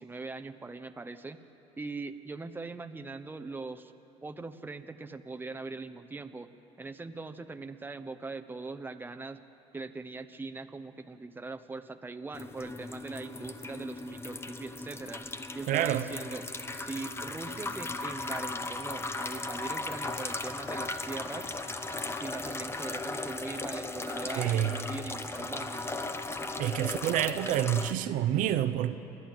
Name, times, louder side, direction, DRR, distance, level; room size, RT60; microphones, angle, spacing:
voice 1, 0.0-1.4 1.8-3.9 4.2-6.5 6.8-9.4 9.7-15.3 15.5-16.5 16.7-21.5 22.2-25.9, right 3 dB, 15° right, 1.0 m, -41 dB
sound 1, 12.3-27.9, left 2 dB, 15° left, 1.1 m, -37 dB
voice 2, 15.7-16.1 24.3-24.8 26.4-28.9, right 11 dB, 70° right, 1.0 m, -28 dB
29.0 x 11.5 x 9.2 m
supercardioid pair, 85°, 14 cm